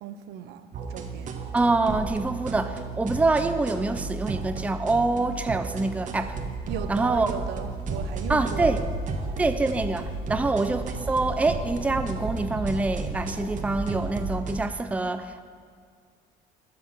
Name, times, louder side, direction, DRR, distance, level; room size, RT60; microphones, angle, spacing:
voice 1, 0.0-1.4 6.7-8.7 10.3-10.5, right 10 dB, 85° right, 10 dB, 0.6 m, -37 dB
sound 1, 0.7-14.6, right 4 dB, 50° right, 1.0 m, -34 dB
voice 2, 1.5-6.4 6.9-7.3 8.3-8.8 9.4-15.4, right 3 dB, 10° right, 9 dB, 0.4 m, -25 dB
sound 2, 6.1-14.6, right 2 dB, 30° right, 1.3 m, -36 dB
9.7 x 5.8 x 6.4 m, 2.1 s
cardioid pair, 110°, 17 cm